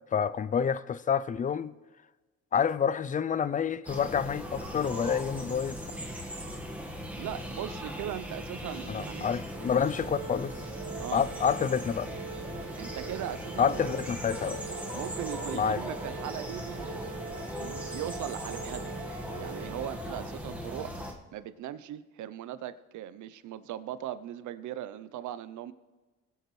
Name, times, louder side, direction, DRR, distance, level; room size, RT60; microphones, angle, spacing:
voice 1, 0.1-1.7 2.5-5.8 8.9-10.6 11.1-12.1 13.6-14.6 15.5-15.8, left 7 dB, 25° left, 0.4 m, -28 dB
sound 1, 3.9-21.1, equal, 5° right, 1.5 m, -39 dB
voice 2, 7.2-9.3 11.0-11.3 12.8-14.0 14.9-16.9 17.6-18.9 19.4-21.0 21.3-25.7, right 11 dB, 75° right, 0.7 m, -39 dB
Organ, 9.5-20.4, right 7 dB, 40° right, 2.2 m, -44 dB
21.0 x 8.1 x 3.2 m
cardioid pair, 90°, 30 cm